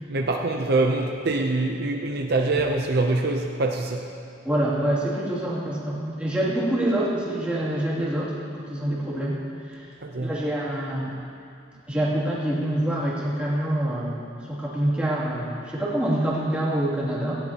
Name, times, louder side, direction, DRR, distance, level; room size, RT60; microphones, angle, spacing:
voice 1, 0.1-4.1 10.0-10.4, right 2 dB, 55° right, 2 dB, 0.7 m, -24 dB
voice 2, 4.4-8.3 8.7-9.4 9.7-9.9 10.2-11.1 11.9-17.4, right 1 dB, 5° right, -8 dB, 2.7 m, -26 dB
18.0 x 15.5 x 3.0 m, 2.4 s
head